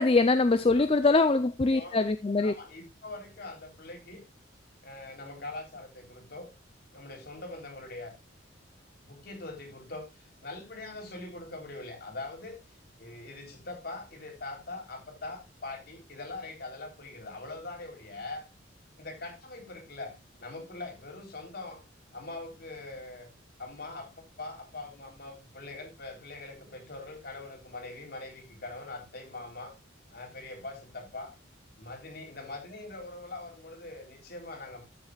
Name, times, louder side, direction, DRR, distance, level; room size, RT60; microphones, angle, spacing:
voice 1, 0.0-2.5, left 3 dB, 30° left, 11 dB, 0.5 m, -23 dB
voice 2, 2.4-4.2 4.8-6.5 6.9-8.1 9.1-12.6 13.0-18.5 19.0-21.8 22.1-23.3 23.6-29.7 30.1-31.3 31.8-34.8, left 2 dB, 55° left, 3 dB, 3.6 m, -42 dB
14.0 x 7.6 x 2.4 m, 0.23 s
head